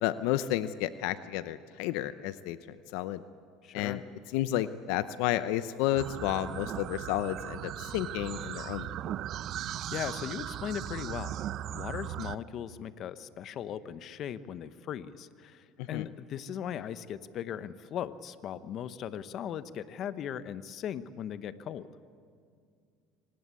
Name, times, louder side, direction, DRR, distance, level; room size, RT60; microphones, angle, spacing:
voice 1, 0.0-3.2 3.7-4.0 4.3-8.9 15.8-16.1, left 13 dB, 80° left, 13 dB, 0.7 m, -31 dB
voice 2, 3.6-4.0 9.6-11.4 11.7-21.9, left 9 dB, 50° left, 13 dB, 0.9 m, -38 dB
sound 1, 6.0-12.3, right 11 dB, 50° right, 0.6 m, -38 dB
25.0 x 19.0 x 8.4 m, 2.2 s
supercardioid pair, 115°, 0 cm